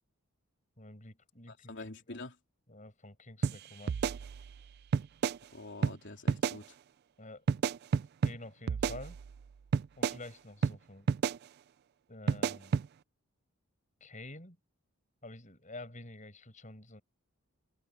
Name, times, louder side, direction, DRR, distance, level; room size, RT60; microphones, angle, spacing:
voice 1, 0.8-2.2 2.7-4.0 7.2-7.4 8.2-9.2 10.0-11.1 12.1-12.8 14.0-14.6 15.2-17.0, left 2 dB, 35° left, 7.3 m, -49 dB
voice 2, 1.5-2.4 5.5-6.8, left 2 dB, 55° left, 3.9 m, -46 dB
sound 1, 3.4-3.6 3.9-4.6 4.9-5.4 5.8-6.0 6.3-6.6 7.5-8.4 8.7-9.4 9.7-10.2 10.6-10.8 11.1-11.4 12.3-12.9, right 6 dB, 50° right, 0.3 m, -30 dB
open air
head